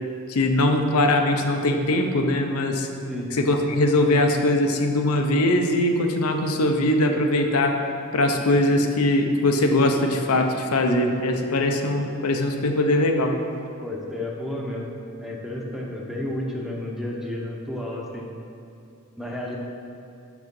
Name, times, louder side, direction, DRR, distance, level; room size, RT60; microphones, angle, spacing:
voice 1, 0.3-2.9 3.4-7.8 8.1-13.4, left 1 dB, 85° left, 4 dB, 0.7 m, -21 dB
voice 2, 13.8-14.9 15.2-18.3 19.2-19.6, left 1 dB, ahead, -2 dB, 0.8 m, -31 dB
6.1 x 5.7 x 5.3 m, 2.6 s
head